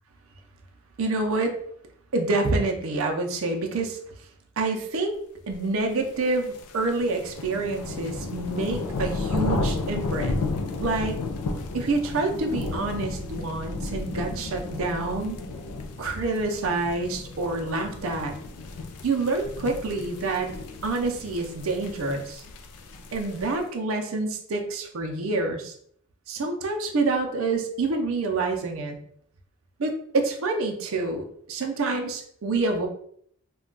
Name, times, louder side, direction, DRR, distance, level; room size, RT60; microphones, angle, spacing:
voice 1, 1.0-1.6 2.1-4.0 4.6-5.1 5.5-10.4 10.8-11.2 11.7-15.4 16.0-18.3 19.0-20.5 20.8-22.4 23.1-25.7 26.3-29.0 29.8-32.9, right 3 dB, 65° right, 3 dB, 0.5 m, -27 dB
sound 1, 6.1-23.6, left 3 dB, 90° left, 0.4 m, -33 dB
2.2 x 2.2 x 3.7 m, 0.65 s
head